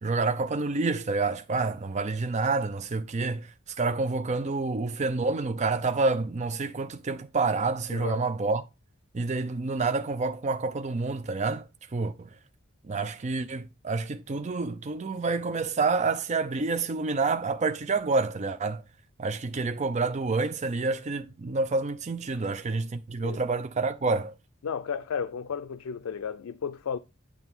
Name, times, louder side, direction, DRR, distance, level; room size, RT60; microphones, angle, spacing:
voice 1, 0.0-8.6 9.1-11.7 11.9-12.3 12.8-18.8 19.2-24.3, right 3 dB, 35° right, 0.5 m, -28 dB
voice 2, 7.9-8.2 23.2-23.4 24.6-27.0, left 6 dB, 85° left, 0.4 m, -33 dB
9.0 x 3.4 x 6.0 m
head